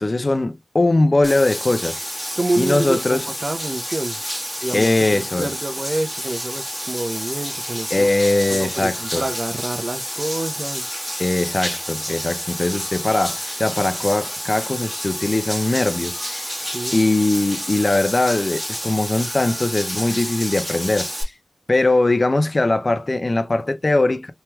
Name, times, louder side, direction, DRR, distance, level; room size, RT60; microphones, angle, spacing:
voice 1, 0.0-2.0 2.6-3.3 4.7-5.5 7.9-9.2 11.2-16.5 16.9-21.3 21.7-24.3, left 2 dB, 30° left, 0.5 m, -20 dB
Bathtub (filling or washing), 1.2-21.2, equal, ahead, 1.4 m, -29 dB
voice 2, 2.3-4.2 4.6-8.1 8.5-10.9 16.6-17.0, right 2 dB, 30° right, 0.6 m, -27 dB
3.1 x 3.0 x 2.2 m
wide cardioid pair, 90°, 0 cm